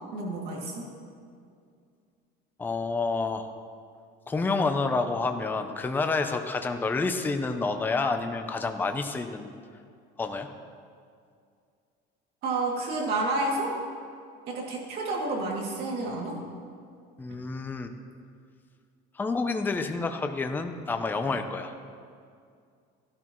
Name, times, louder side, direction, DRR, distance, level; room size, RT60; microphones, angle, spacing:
voice 1, 0.1-0.9 12.4-13.7 14.5-16.4, right 2 dB, 55° right, -2 dB, 2.5 m, -30 dB
voice 2, 2.6-3.5 4.3-9.5 10.2-10.5 17.2-17.9 19.1-21.7, left 3 dB, 10° left, 7 dB, 0.5 m, -29 dB
14.5 x 12.0 x 3.1 m, 2.3 s
cardioid pair, 160°, 20 cm